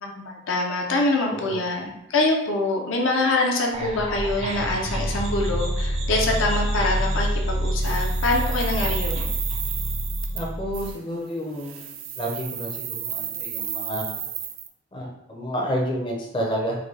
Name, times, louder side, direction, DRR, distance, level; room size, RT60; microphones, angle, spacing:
voice 1, 0.0-9.3, left 2 dB, 70° left, 1 dB, 0.6 m, -25 dB
sound 1, 3.7-10.9, equal, 30° right, 0.4 m, -27 dB
sound 2, 7.8-10.5 10.7-11.0 11.5-14.7, right 9 dB, 90° right, 0.4 m, -33 dB
voice 2, 10.3-11.9 12.2-14.2 14.9-16.8, equal, 25° left, -2 dB, 0.5 m, -30 dB
3.7 x 2.2 x 3.2 m, 0.86 s
head